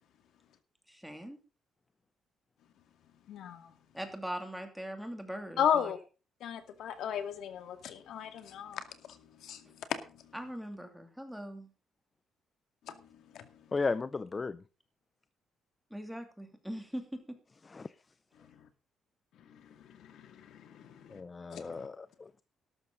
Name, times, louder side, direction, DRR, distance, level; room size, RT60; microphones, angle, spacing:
voice 1, 0.9-1.4 3.9-5.9 10.3-11.7 15.9-17.4, equal, ahead, 2.7 m, -41 dB
voice 2, 3.3-3.7 5.6-6.0 6.4-10.2 12.9-13.0 13.3-13.4 18.6-18.7 19.5-21.2 21.5-21.9, left 9 dB, 70° left, 2.2 m, -36 dB
voice 3, 13.7-14.6 17.7-17.9 21.1-22.4, left 4 dB, 25° left, 0.5 m, -35 dB
12.5 x 12.5 x 3.9 m
cardioid pair, 135°, 0 cm